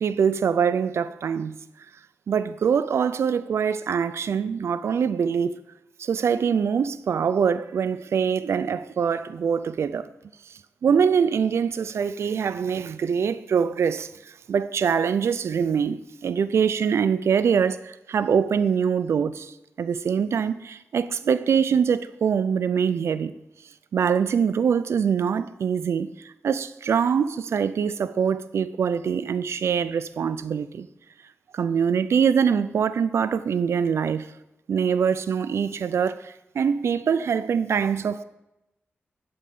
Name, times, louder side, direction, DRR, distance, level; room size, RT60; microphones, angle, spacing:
voice 1, 0.0-1.6 2.3-5.5 6.0-10.1 10.8-23.3 23.9-30.9 31.5-34.3 34.7-38.2, right 7 dB, 80° right, 0.4 m, -24 dB
11.0 x 4.4 x 5.3 m
wide cardioid pair, 105°, 4 cm